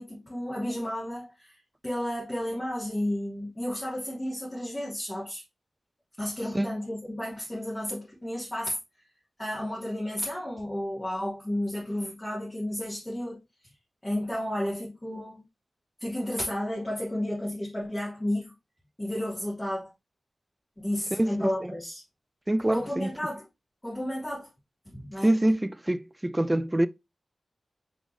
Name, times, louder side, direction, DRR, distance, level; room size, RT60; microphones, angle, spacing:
voice 1, 0.0-5.4 6.2-8.8 9.4-13.4 14.0-15.4 16.0-18.5 19.0-19.9 20.8-22.0 22.7-23.4 23.8-24.5 24.9-25.3, left 1 dB, 15° left, 3.4 m, -32 dB
voice 2, 21.1-21.7 22.5-23.1 25.2-26.9, right 1 dB, 15° right, 0.4 m, -25 dB
6.2 x 5.1 x 3.2 m
wide cardioid pair, 80°, 0 cm